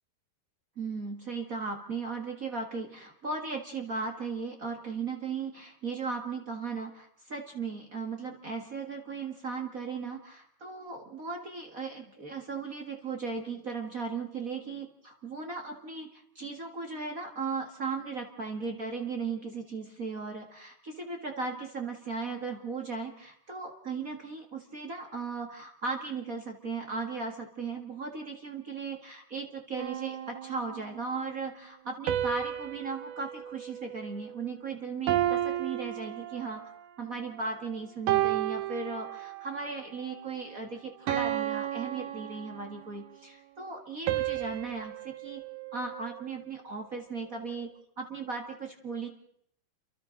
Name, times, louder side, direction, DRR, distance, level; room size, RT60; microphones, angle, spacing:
voice 1, 0.8-36.7 37.0-45.4 45.7-49.1, right 4 dB, 55° right, 3 dB, 0.9 m, -37 dB
sound 1, 29.8-31.1 32.1-34.6 35.1-36.8 37.4-37.6 38.1-39.6 40.1-40.4 41.1-43.0 44.1-46.5, right 13 dB, 75° right, 2.8 m, -33 dB
29.5 x 24.0 x 3.9 m, 0.72 s
omnidirectional pair, 4.6 m